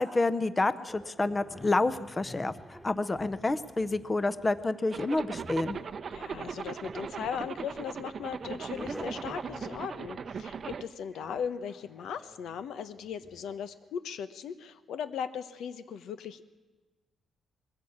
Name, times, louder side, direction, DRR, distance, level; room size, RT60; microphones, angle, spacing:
voice 1, 0.0-5.8, left 2 dB, 20° left, 14 dB, 0.7 m, -29 dB
sound 1, 0.9-13.5, equal, ahead, 1.5 m, -50 dB
Zipper (clothing), 4.9-10.8, right 6 dB, 45° right, 0.7 m, -39 dB
voice 2, 6.1-16.5, left 7 dB, 85° left, 12 dB, 1.0 m, -38 dB
21.0 x 16.0 x 8.7 m, 1.2 s
cardioid pair, 135°, 0 cm